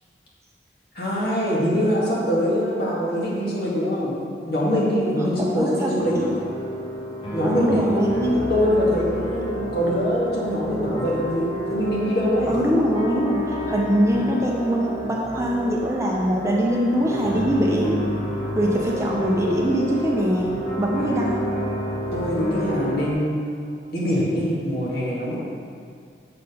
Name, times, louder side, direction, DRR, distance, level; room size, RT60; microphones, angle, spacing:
voice 1, 1.0-4.1 4.5-6.2 7.3-12.5 21.0-21.2 22.1-23.6 23.9-25.3, equal, 60° left, -6 dB, 1.7 m, -23 dB
voice 2, 5.4-6.3 7.4-8.5 12.5-18.0 18.5-20.5 20.8-21.5, equal, 15° right, -2 dB, 0.5 m, -23 dB
sound 1, 6.0-23.1, equal, 30° left, 1.3 m, -30 dB
6.6 x 4.3 x 5.3 m, 2.2 s
head